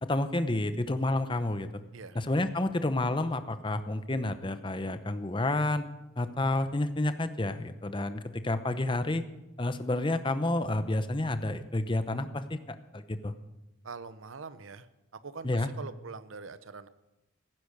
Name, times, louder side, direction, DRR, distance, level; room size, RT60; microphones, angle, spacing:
voice 1, 0.0-1.8 2.1-5.8 6.2-9.2 9.6-13.3 15.4-15.7, left 2 dB, 25° left, 11 dB, 0.8 m, -30 dB
voice 2, 13.8-14.9 15.1-16.9, right 4 dB, 80° right, 14 dB, 0.8 m, -43 dB
15.5 x 10.0 x 6.6 m, 1.0 s
head